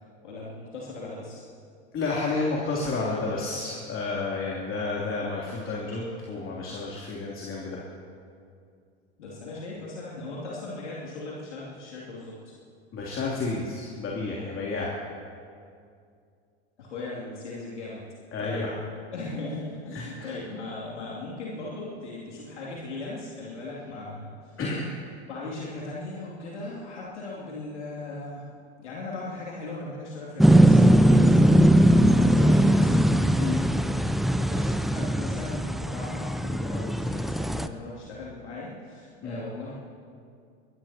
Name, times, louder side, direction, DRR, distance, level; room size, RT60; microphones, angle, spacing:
voice 1, 0.2-1.5 9.2-12.5 16.8-18.0 18.4-18.7 19.1-24.6 25.3-28.4 28.8-33.0 34.4-39.7, left 2 dB, 85° left, -6 dB, 2.8 m, -38 dB
voice 2, 1.9-7.8 12.9-14.9 18.3-18.7 19.9-20.3 24.6-24.9 33.4-33.7 39.2-39.4, left 3 dB, 35° left, -4 dB, 3.1 m, -31 dB
sound 1, 30.4-37.7, right 1 dB, ahead, 0.5 m, -20 dB
22.5 x 22.0 x 2.9 m, 2.3 s
hypercardioid pair, 85°, 34 cm